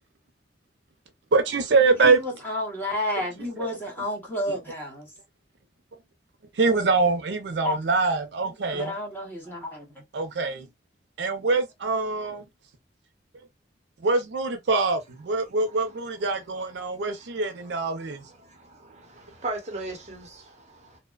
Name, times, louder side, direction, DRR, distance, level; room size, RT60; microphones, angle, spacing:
voice 1, 1.3-2.2 3.6-3.7 6.6-8.9 10.1-10.7 11.2-12.4 14.0-18.2, right 3 dB, 75° right, 0.5 m, -24 dB
voice 2, 2.0-5.1 7.6-7.8 8.7-9.9, left 1 dB, 10° left, 0.9 m, -31 dB
voice 3, 16.8-17.4 18.4-21.0, right 2 dB, 40° right, 0.8 m, -38 dB
2.7 x 2.1 x 2.2 m
head